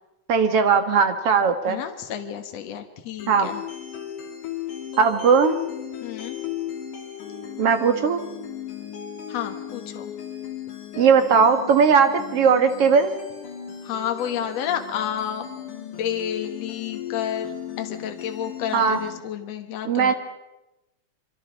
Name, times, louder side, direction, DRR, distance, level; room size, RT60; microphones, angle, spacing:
voice 1, 0.3-1.8 3.3-3.5 5.0-5.6 7.6-8.2 11.0-13.1 18.7-19.0 19.9-20.1, right 6 dB, 55° right, 8 dB, 2.4 m, -18 dB
voice 2, 1.7-3.6 6.0-6.4 9.3-10.1 13.8-15.5 16.0-20.1, left 9 dB, 60° left, 6 dB, 2.4 m, -30 dB
sound 1, 3.2-19.2, left 9 dB, 75° left, 4.2 m, -36 dB
26.5 x 25.0 x 5.4 m, 0.97 s
omnidirectional pair, 3.6 m